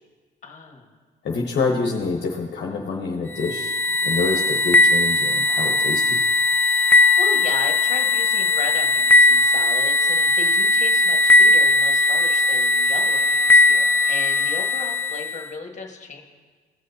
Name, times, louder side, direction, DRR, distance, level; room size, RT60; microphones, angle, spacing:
voice 1, 0.4-0.9 7.2-16.2, left 4 dB, 40° left, 2 dB, 1.4 m, -35 dB
voice 2, 1.2-6.2, left 4 dB, 60° left, -1 dB, 0.9 m, -26 dB
sound 1, 3.3-15.5, left 2 dB, 10° left, 0.6 m, -18 dB
17.0 x 6.3 x 2.7 m, 1.5 s
cardioid pair, 90°, 20 cm